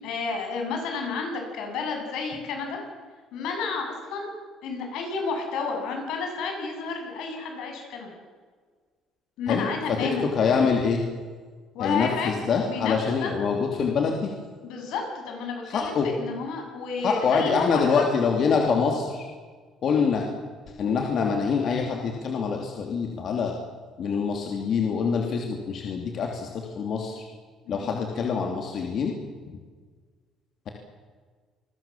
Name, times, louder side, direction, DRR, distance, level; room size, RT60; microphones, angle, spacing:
voice 1, 0.0-2.8 3.3-4.3 4.6-8.1 9.4-10.4 11.7-13.3 14.6-18.0 19.9-20.1 27.7-27.9, left 4 dB, 75° left, 3 dB, 8.0 m, -31 dB
voice 2, 9.5-11.0 11.8-14.3 15.7-16.1 17.0-19.3 19.8-20.3 20.8-23.5 24.0-27.3 27.7-29.1, left 5 dB, 45° left, 1 dB, 3.1 m, -25 dB
28.0 x 21.0 x 7.5 m, 1.6 s
cardioid pair, 145°, 0 cm